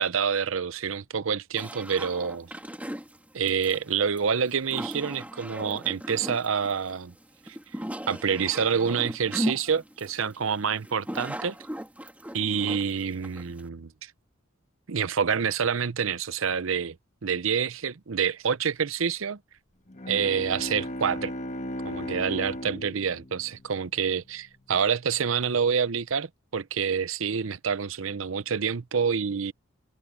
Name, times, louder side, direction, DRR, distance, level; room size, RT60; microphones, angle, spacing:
voice 1, 0.0-2.5 3.3-7.1 7.5-7.6 8.1-11.5 12.3-14.1 14.9-17.0 17.2-19.4 20.1-21.3 21.8-29.5, right 6 dB, 75° right, 0.7 m, -27 dB
sound 1, 1.6-13.7, equal, 5° right, 2.6 m, -37 dB
Bowed string instrument, 19.9-24.4, equal, 35° left, 1.5 m, -36 dB
head